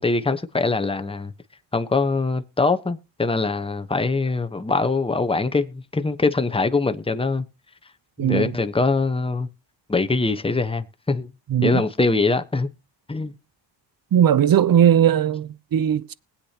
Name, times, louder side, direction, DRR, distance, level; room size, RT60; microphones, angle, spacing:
voice 1, 0.0-1.3 1.7-7.4 8.2-9.5 9.9-11.3 11.6-12.7 13.1-13.4, left 3 dB, 10° left, 1.1 m, -23 dB
voice 2, 8.2-8.5 11.5-11.8 14.1-16.1, right 9 dB, 50° right, 0.8 m, -18 dB
21.0 x 8.5 x 2.9 m
cardioid pair, 60°, 45 cm